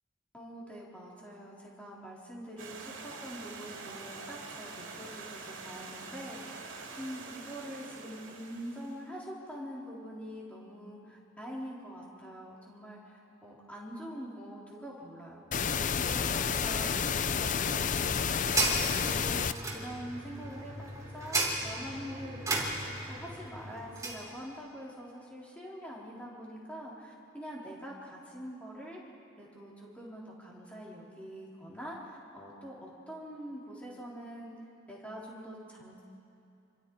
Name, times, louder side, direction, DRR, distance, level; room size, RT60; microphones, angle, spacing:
voice 1, 0.3-6.6 7.0-18.8 19.1-29.0 29.4-34.5 34.9-36.0, equal, 5° left, -5 dB, 3.9 m, -44 dB
Stream, 2.6-9.0, right 4 dB, 70° right, 2.8 m, -45 dB
sound 1, 15.5-19.5, left 6 dB, 40° left, 0.5 m, -30 dB
sound 2, 18.0-24.2, right 2 dB, 15° right, 3.4 m, -35 dB
27.0 x 25.5 x 4.8 m, 2.6 s
head